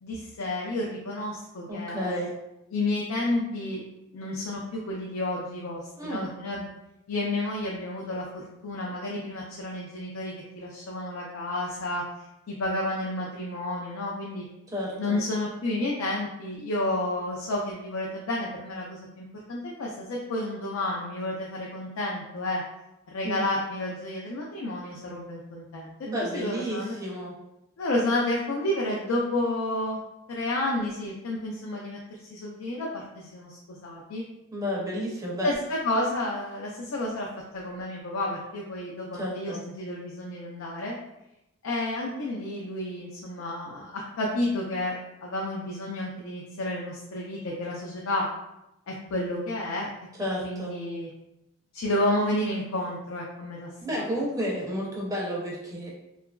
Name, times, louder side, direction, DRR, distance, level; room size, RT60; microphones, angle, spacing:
voice 1, 0.0-2.3 2.7-3.8 4.1-6.7 7.1-14.4 14.9-22.6 23.1-25.9 26.2-27.0 27.8-30.0 30.3-32.0 32.3-34.2 35.4-37.3 37.5-41.0 41.6-48.3 48.9-49.9 50.4-51.1 51.7-53.7 54.0-54.1, left 1 dB, 90° left, -3 dB, 0.4 m, -31 dB
voice 2, 1.7-2.3 6.0-6.3 14.7-15.2 23.2-23.4 26.0-27.3 34.5-35.5 39.1-39.6 50.2-50.7 53.8-55.9, equal, 15° right, -4 dB, 0.5 m, -31 dB
2.8 x 2.4 x 2.3 m, 0.89 s
head